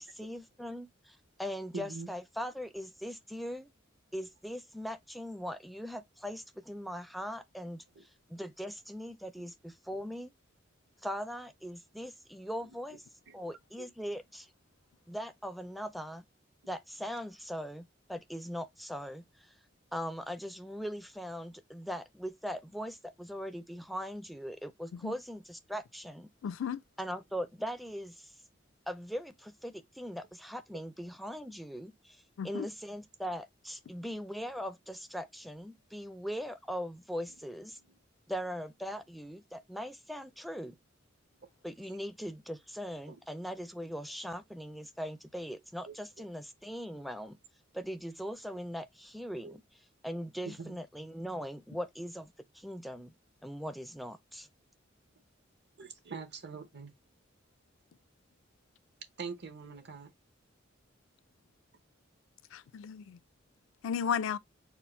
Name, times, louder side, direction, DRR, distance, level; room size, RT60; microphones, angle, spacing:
voice 1, 0.0-3.7 4.1-10.3 11.0-13.0 13.3-14.5 15.1-16.2 16.7-19.5 19.9-26.3 27.0-28.3 28.9-37.8 38.3-40.8 41.6-47.4 47.7-49.6 50.0-53.1 53.4-54.5, equal, ahead, 0.4 m, -40 dB
voice 2, 1.7-2.1 7.9-8.0 9.4-9.5 9.9-10.0 12.9-13.0 13.3-13.4 13.8-13.9 34.0-34.2 37.9-38.0 43.1-43.2 45.9-46.2 49.4-49.6 50.5-50.8 55.8-56.9 59.2-60.1, right 5 dB, 60° right, 0.9 m, -44 dB
voice 3, 26.4-26.8 32.4-32.7 62.5-63.2 63.8-64.4, left 7 dB, 75° left, 0.3 m, -34 dB
4.4 x 2.0 x 4.3 m
head